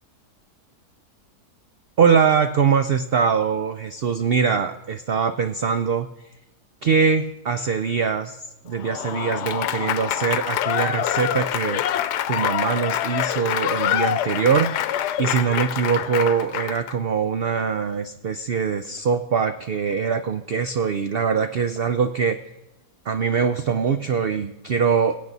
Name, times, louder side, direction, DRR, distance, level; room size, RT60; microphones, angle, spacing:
voice 1, 2.0-6.1 6.8-11.8 12.3-14.9 15.2-22.4 23.1-25.1, right 6 dB, 85° right, 9 dB, 0.5 m, -22 dB
Applause / Crowd, 8.8-16.9, left 11 dB, 85° left, 1.2 m, -25 dB
22.0 x 8.4 x 4.0 m, 0.94 s
omnidirectional pair, 1.7 m